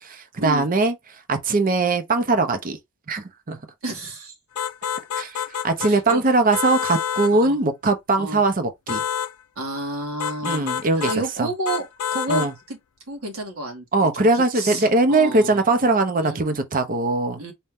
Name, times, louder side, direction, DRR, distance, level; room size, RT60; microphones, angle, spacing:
voice 1, 0.4-0.9 1.3-2.8 3.1-3.6 5.2-9.0 10.4-11.1 11.4-11.5 12.3-12.5 13.9-17.4, right 2 dB, 40° right, 0.7 m, -20 dB
voice 2, 3.8-4.3 5.9-6.2 7.3-7.6 8.2-8.4 9.6-10.7 11.1-12.8 13.1-13.9 14.1-15.6 16.2-16.4 17.4-17.5, right 2 dB, 75° right, 1.8 m, -30 dB
sound 1, 4.6-6.2 6.5-7.4 8.9-9.3 10.2-11.2 11.7-12.5, left 8 dB, 90° left, 0.4 m, -28 dB
4.3 x 2.7 x 3.5 m
head